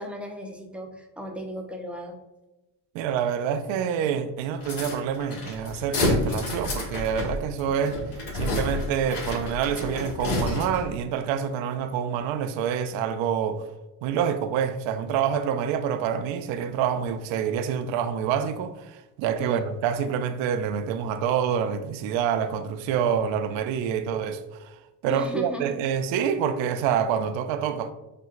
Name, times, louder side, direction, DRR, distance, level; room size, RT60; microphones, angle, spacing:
voice 1, 0.0-2.2 19.4-19.6 25.1-25.8, equal, ahead, 0.5 m, -36 dB
voice 2, 2.9-8.0 8.3-13.6 14.0-24.8 25.0-27.9, right 8 dB, 65° right, 0.5 m, -27 dB
sound 1, 4.6-11.0, left 2 dB, 75° left, 1.5 m, -30 dB
6.4 x 2.2 x 2.4 m
cardioid pair, 90°, 49 cm